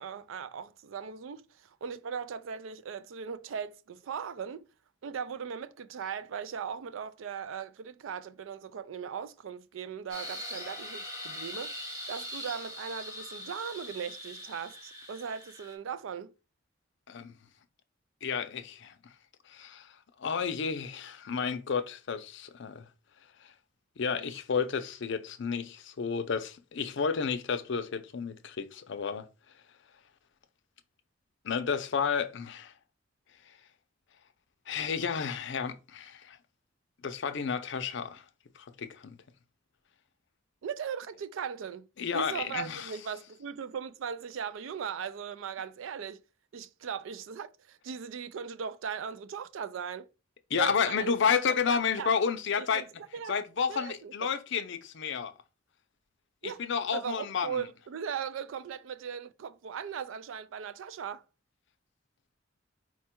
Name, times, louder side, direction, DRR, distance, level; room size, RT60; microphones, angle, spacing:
voice 1, 0.0-4.6 5.0-11.7 12.1-16.3 40.6-41.9 42.1-46.2 46.5-50.1 50.6-51.1 51.5-52.1 52.6-52.9 53.1-53.3 53.7-54.3 56.4-56.6 56.9-61.2, right 7 dB, 75° right, 0.4 m, -38 dB
sound 1, 10.1-15.7, left 1 dB, 15° right, 1.1 m, -42 dB
voice 2, 18.2-18.9 19.5-19.9 20.2-22.8 23.4-23.5 24.0-29.2 31.4-32.7 34.7-36.4 37.0-38.2 38.8-39.1 42.0-42.9 50.5-52.8 53.3-55.3 56.4-57.6, left 6 dB, 65° left, 0.5 m, -31 dB
4.4 x 2.2 x 4.3 m
head